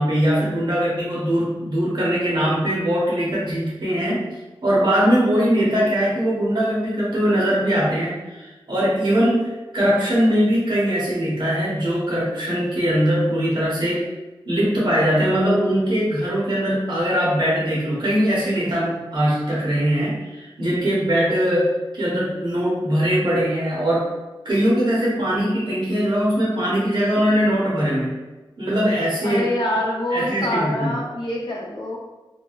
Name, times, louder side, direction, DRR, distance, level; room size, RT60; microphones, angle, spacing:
voice 1, 0.0-4.2 4.6-14.0 14.4-24.1 24.4-28.2 28.6-29.4 30.1-31.0, equal, 60° right, -6 dB, 1.2 m, -21 dB
voice 2, 29.2-32.0, left 1 dB, 60° left, -2 dB, 0.7 m, -25 dB
3.5 x 2.2 x 2.3 m, 1.1 s
wide cardioid pair, 55°, 9 cm